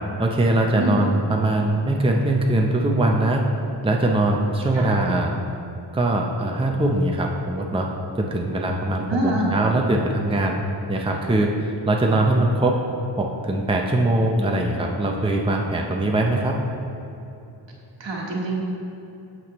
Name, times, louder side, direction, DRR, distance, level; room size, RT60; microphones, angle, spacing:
voice 1, 0.2-3.4 3.8-5.3 5.9-7.9 8.2-10.6 10.9-12.8 13.2-16.6, right 1 dB, 10° right, 1 dB, 0.6 m, -21 dB
voice 2, 9.1-9.6 11.1-11.2 18.0-18.5, right 1 dB, 70° right, -2 dB, 1.4 m, -25 dB
8.7 x 6.2 x 3.0 m, 2.8 s
wide cardioid pair, 55°, 46 cm